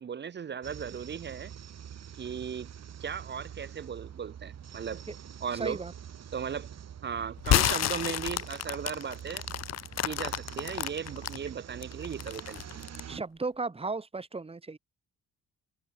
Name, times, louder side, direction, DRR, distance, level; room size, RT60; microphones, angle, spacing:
voice 1, 0.0-1.5 2.2-2.7 3.0-5.0 5.4-5.8 6.3-6.7 7.0-9.4 10.0-12.9, right 7 dB, 35° right, 0.7 m, -37 dB
sound 1, 0.6-13.2, right 9 dB, 60° right, 5.7 m, -45 dB
voice 2, 5.5-5.9 13.1-14.8, right 3 dB, 20° right, 1.4 m, -35 dB
sound 2, 7.4-11.4 11.8-13.1, left 12 dB, 60° left, 0.8 m, -29 dB
cardioid pair, 90°, 30 cm